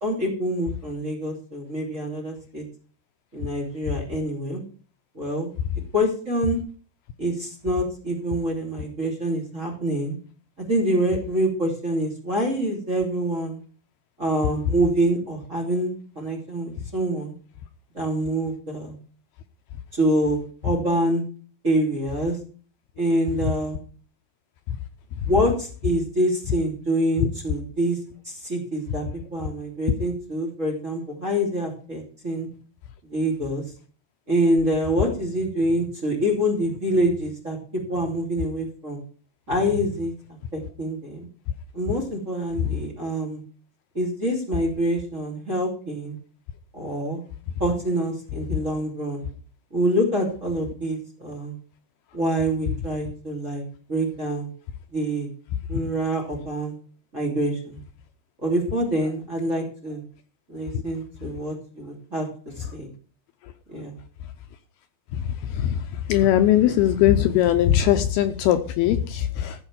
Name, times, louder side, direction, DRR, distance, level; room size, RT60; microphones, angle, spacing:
voice 1, 0.0-2.6 3.3-4.6 5.1-5.5 5.9-6.6 7.2-10.2 10.6-13.6 14.2-17.3 17.9-18.9 19.9-21.2 21.6-22.4 23.0-23.8 25.2-28.0 28.2-29.0 29.3-32.5 33.1-33.6 34.3-37.6 37.9-39.0 39.5-40.1 40.5-41.3 41.7-43.4 43.9-46.2 46.7-47.2 47.6-49.2 49.7-51.6 52.1-53.6 53.9-54.5 54.9-55.3 55.7-56.8 57.1-57.8 58.4-60.0 60.5-62.3 62.6-62.9 63.7-63.9, right 1 dB, 20° right, 0 dB, 2.7 m, -26 dB
voice 2, 66.1-69.6, left 11 dB, 80° left, 8 dB, 2.5 m, -19 dB
15.0 x 5.4 x 7.4 m, 0.42 s
omnidirectional pair, 4.9 m